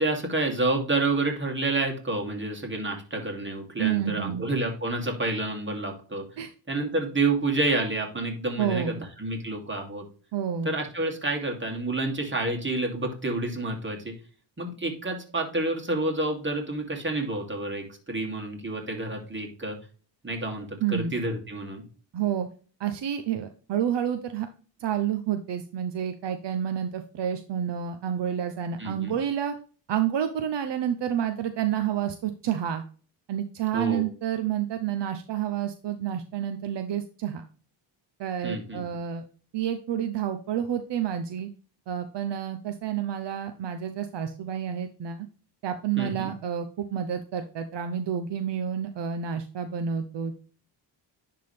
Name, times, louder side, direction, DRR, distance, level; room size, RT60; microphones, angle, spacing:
voice 1, 0.0-6.2 6.7-10.0 10.6-14.1 14.6-19.8 20.2-21.8 28.8-29.2 33.7-34.1 38.4-38.8 46.0-46.3, right 2 dB, 25° right, 1 dB, 2.6 m, -29 dB
voice 2, 3.8-4.5 6.4-6.5 8.6-9.0 10.3-10.7 20.8-21.2 22.1-22.5 22.8-24.5 24.8-29.5 29.9-32.8 33.3-37.4 38.2-39.2 39.5-41.5 41.9-45.3 45.6-50.4, right 9 dB, 65° right, 7 dB, 0.8 m, -29 dB
10.5 x 3.8 x 3.3 m, 0.39 s
cardioid pair, 100°, 45 cm